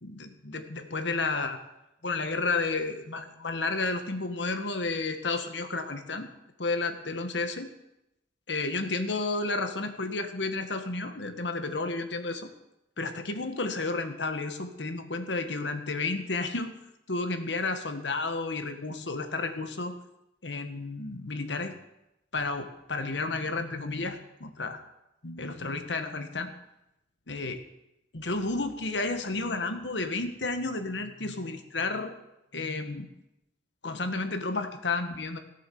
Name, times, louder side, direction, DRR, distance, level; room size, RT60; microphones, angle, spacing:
voice 1, 0.0-1.6 2.0-6.3 6.6-7.7 8.5-12.5 13.0-16.7 17.1-19.9 20.4-21.7 22.3-24.8 25.2-26.5 27.3-27.6 28.1-32.1 32.5-33.1 33.8-35.4, left 3 dB, 90° left, 8 dB, 1.5 m, -31 dB
17.5 x 8.5 x 7.1 m, 0.89 s
head